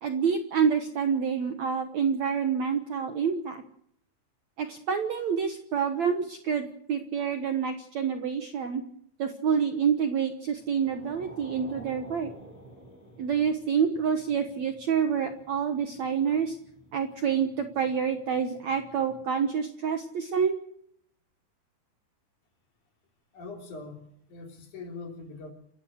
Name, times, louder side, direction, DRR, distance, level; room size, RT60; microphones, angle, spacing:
voice 1, 0.0-3.6 4.6-8.8 9.2-12.3 13.2-16.6 16.9-20.6, right 7 dB, 60° right, 6 dB, 1.9 m, -27 dB
sound 1, 10.5-19.3, right 1 dB, 10° left, 6.4 m, -52 dB
voice 2, 23.3-25.5, left 3 dB, 50° left, 3 dB, 4.7 m, -42 dB
28.5 x 14.5 x 6.5 m, 0.67 s
omnidirectional pair, 4.6 m